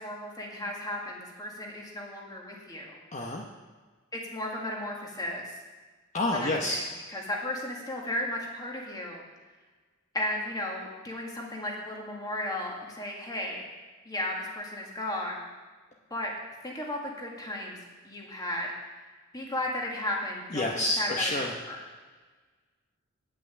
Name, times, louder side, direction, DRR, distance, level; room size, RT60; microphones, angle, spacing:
voice 1, 0.0-3.0 4.1-5.5 6.3-9.2 10.1-13.6 14.1-15.4 16.1-16.3 16.6-17.8 18.0-18.7 19.3-21.9, left 1 dB, 20° left, -1 dB, 1.9 m, -35 dB
voice 2, 3.1-3.4 6.1-6.8 20.5-21.5, left 2 dB, 35° left, -1 dB, 0.9 m, -28 dB
9.6 x 6.1 x 8.5 m, 1.4 s
head